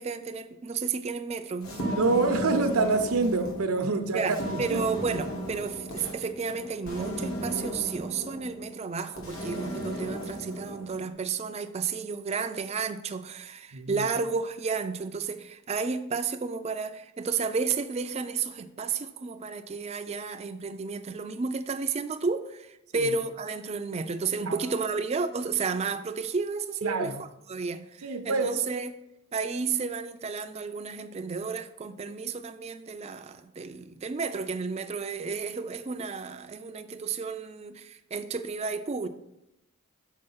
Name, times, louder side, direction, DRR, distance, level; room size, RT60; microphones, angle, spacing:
voice 1, 0.0-2.0 4.1-29.0 29.3-39.1, right 5 dB, 30° right, 0.4 m, -32 dB
sound 1, 1.6-11.1, right 1 dB, 70° left, 1.7 m, -36 dB
voice 2, 1.9-4.8 13.7-14.0 22.9-23.1 24.5-24.6 26.8-27.1 28.0-28.5, right 3 dB, 85° right, 0.7 m, -26 dB
6.4 x 5.1 x 5.5 m
head